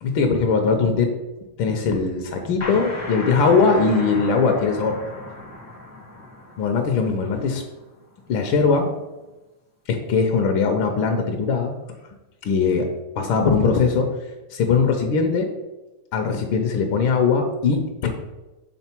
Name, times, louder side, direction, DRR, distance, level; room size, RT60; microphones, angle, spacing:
voice 1, 0.0-1.1 1.6-5.0 6.6-7.6 8.3-8.9 9.9-11.7 12.4-12.9 13.2-14.1 14.5-15.5 16.1-18.1, left 5 dB, 80° left, 5 dB, 1.4 m, -20 dB
sound 1, 2.6-8.0, left 2 dB, 15° left, 0.5 m, -36 dB
6.9 x 3.7 x 4.4 m, 1.1 s
omnidirectional pair, 2.2 m